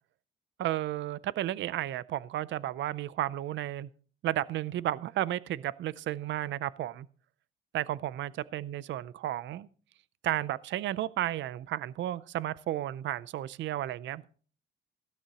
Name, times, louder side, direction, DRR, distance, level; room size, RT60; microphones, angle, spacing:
voice 1, 0.6-3.9 4.2-7.1 7.7-9.7 10.2-14.3, right 13 dB, 70° right, 0.5 m, -33 dB
16.0 x 12.5 x 2.9 m
cardioid pair, 90°, 20 cm